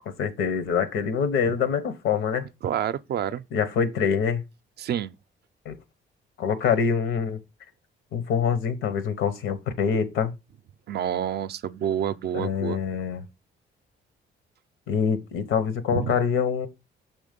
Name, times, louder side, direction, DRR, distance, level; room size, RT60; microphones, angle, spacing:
voice 1, 0.2-2.5 3.5-4.4 5.6-5.8 6.4-7.4 8.1-10.3 12.3-13.2 14.9-16.7, left 6 dB, 90° left, 1.0 m, -25 dB
voice 2, 2.6-3.4 4.8-5.1 10.9-12.8 15.9-16.1, right 9 dB, 55° right, 0.4 m, -28 dB
6.1 x 3.6 x 5.1 m
cardioid pair, 90°, 20 cm